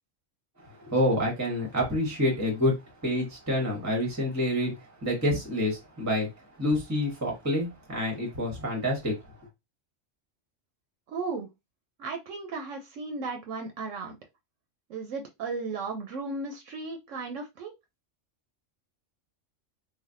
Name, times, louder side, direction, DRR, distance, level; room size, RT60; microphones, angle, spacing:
voice 1, 0.6-2.7 3.0-4.7 5.0-6.3 6.6-9.2, left 1 dB, 15° right, 0.9 m, -27 dB
voice 2, 11.1-11.5 12.0-14.2 14.9-17.7, right 4 dB, 80° right, 0.9 m, -35 dB
3.3 x 2.4 x 2.5 m
omnidirectional pair, 1.3 m